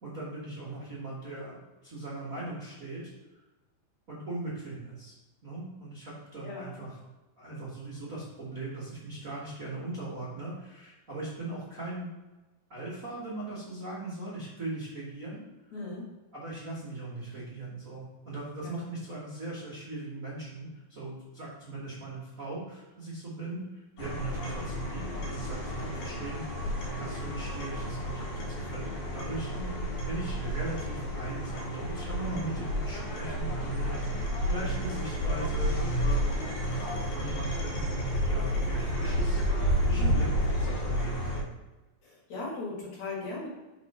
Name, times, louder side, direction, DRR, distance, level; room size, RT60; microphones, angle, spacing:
voice 1, 0.0-3.1 4.1-5.1 5.4-7.0 7.4-12.1 12.7-15.4 16.3-26.7 27.0-29.8 30.0-36.5 36.8-41.5, right 2 dB, 80° right, -7 dB, 0.7 m, -39 dB
voice 2, 6.4-6.7 15.7-16.1 18.6-18.9 29.5-29.9 40.0-40.3 42.0-43.5, left 3 dB, 55° left, -5 dB, 3.0 m, -38 dB
sound 1, 24.0-41.4, equal, 70° left, 2.9 m, -31 dB
5.9 x 4.5 x 5.4 m, 1.1 s
omnidirectional pair, 4.3 m